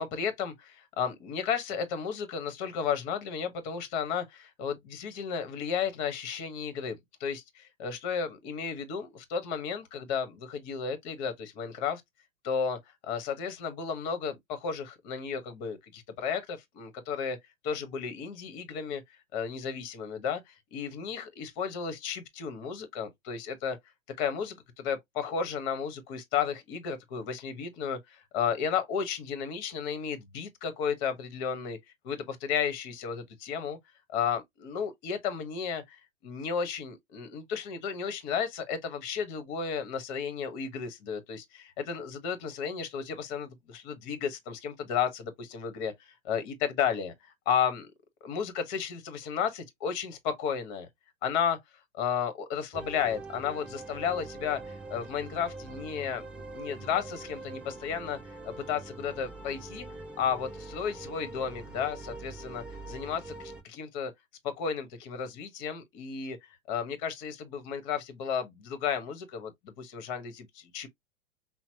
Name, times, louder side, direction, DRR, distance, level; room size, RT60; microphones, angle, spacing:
voice 1, 0.0-12.0 12.4-17.4 17.6-19.0 19.3-23.8 24.2-31.8 32.0-33.8 34.1-47.9 48.2-50.9 51.2-51.6 51.9-58.2 58.4-59.9 60.2-64.1 64.4-70.9, left 7 dB, 35° left, 1.2 m, -33 dB
sound 1, 52.7-63.6, right 3 dB, 5° right, 0.5 m, -44 dB
5.7 x 2.1 x 2.8 m
figure-of-eight pair, 100°, 39 cm